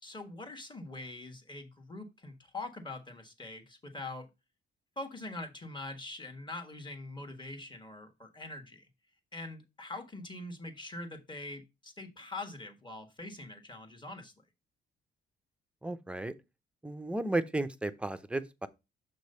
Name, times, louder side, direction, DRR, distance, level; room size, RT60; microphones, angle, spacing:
voice 1, 0.0-4.3 5.0-8.9 9.3-14.3, left 2 dB, 25° left, 1.4 m, -43 dB
voice 2, 15.8-16.3 16.8-18.7, right 2 dB, 5° right, 0.5 m, -33 dB
6.6 x 3.1 x 5.3 m
cardioid pair, 90°, 20 cm